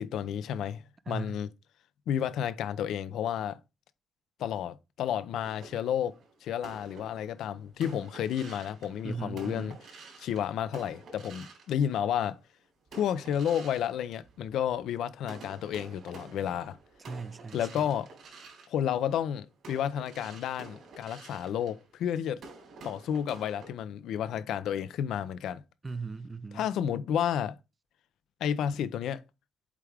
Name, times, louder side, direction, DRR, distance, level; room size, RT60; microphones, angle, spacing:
voice 1, 0.0-1.5 2.1-3.6 4.4-9.8 10.2-12.4 12.9-16.8 17.5-18.1 18.7-22.4 22.8-25.6 26.5-27.6 28.4-29.2, left 9 dB, 80° left, 0.6 m, -31 dB
voice 2, 1.1-1.4 9.0-9.8 17.0-17.9 25.8-26.7, right 4 dB, 25° right, 0.5 m, -38 dB
sound 1, 5.4-12.3 12.9-14.9 15.2-23.7, right 3 dB, 70° right, 3.6 m, -50 dB
8.3 x 3.5 x 3.5 m
cardioid pair, 90°, 0 cm